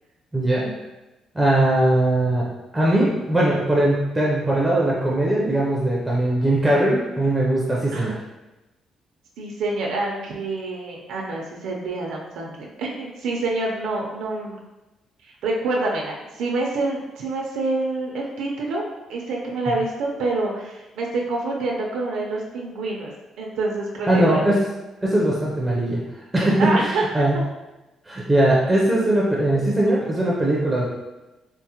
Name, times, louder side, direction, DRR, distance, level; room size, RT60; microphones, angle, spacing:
voice 1, 0.3-0.7 1.3-2.5 2.7-8.1 24.1-24.6 25.0-26.0 26.3-27.3 28.1-30.9, right 1 dB, 10° right, -5 dB, 0.5 m, -20 dB
voice 2, 9.4-14.6 15.4-18.8 19.1-23.1 23.4-24.4 26.6-27.0 27.3-27.4, right 2 dB, 85° right, -1 dB, 0.5 m, -27 dB
4.5 x 2.1 x 2.8 m, 1.0 s
cardioid pair, 150°, 0 cm